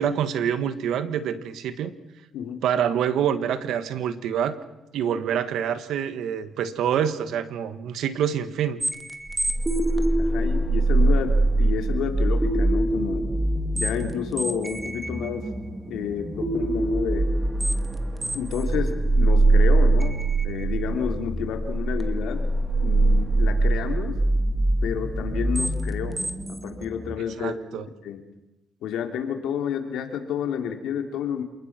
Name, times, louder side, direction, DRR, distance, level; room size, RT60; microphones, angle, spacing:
voice 1, 0.0-1.9 2.6-4.6 4.9-8.8 27.4-27.8, right 8 dB, 80° right, 12 dB, 1.6 m, -26 dB
sound 1, 8.8-27.2, right 2 dB, 15° right, 2.4 m, -23 dB
voice 2, 10.1-13.3 13.7-15.5 15.8-17.3 18.3-24.2 24.8-26.2 26.6-28.2 28.8-31.4, left 8 dB, 85° left, 5 dB, 3.0 m, -30 dB
28.0 x 20.0 x 6.1 m, 0.97 s
cardioid pair, 90°, 0 cm